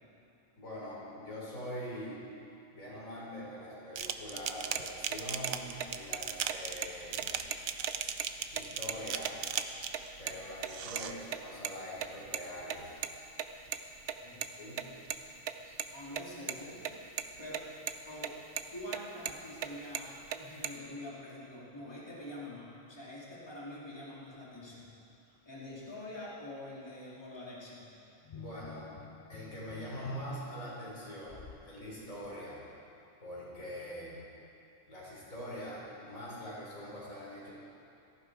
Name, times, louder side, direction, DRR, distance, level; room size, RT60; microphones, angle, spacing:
voice 1, 0.6-2.2 2.7-7.4 8.0-8.1 8.5-9.5 10.2-12.9 14.6-14.9 28.4-28.9 29.3-32.6 33.2-34.2 34.9-37.5, equal, 85° left, -6 dB, 4.7 m, -43 dB
sound 1, 4.0-10.1 10.6-11.1, right 8 dB, 85° right, 1.1 m, -37 dB
sound 2, 4.8-4.9 5.1-5.2 5.4-5.5 5.8-6.2 6.5-6.6 6.8-6.9 7.2-8.3 8.5-8.6 8.9-9.0 9.2-9.6 9.9-10.4 10.6-11.7 12.0-14.5 14.8-16.5 16.8-16.9 17.2-17.6 17.9-18.3 18.6-19.7 19.9-20.7, right 9 dB, 65° right, 1.0 m, -36 dB
voice 2, 15.9-17.0 17.4-17.6 18.0-18.4 18.7-24.9 25.4-27.9, left 1 dB, 20° left, -7 dB, 2.7 m, -45 dB
sound 3, 28.2-31.7 32.1-32.3, left 6 dB, 50° left, 0.5 m, -51 dB
17.0 x 14.5 x 4.8 m, 2.7 s
omnidirectional pair, 1.4 m